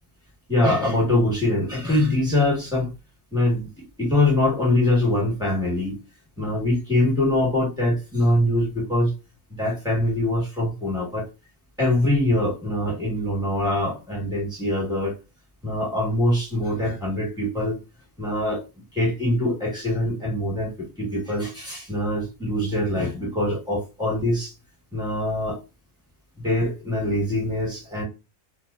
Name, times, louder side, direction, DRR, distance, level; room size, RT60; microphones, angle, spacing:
voice 1, 0.5-2.9 3.3-3.7 4.0-6.0 6.4-9.1 9.6-11.3 11.8-15.1 15.6-17.8 18.2-18.6 18.9-20.7 21.0-24.5 24.9-25.6 26.4-28.0, left 1 dB, 5° right, -4 dB, 1.1 m, -23 dB
2.4 x 2.3 x 2.4 m, 0.27 s
omnidirectional pair, 1.6 m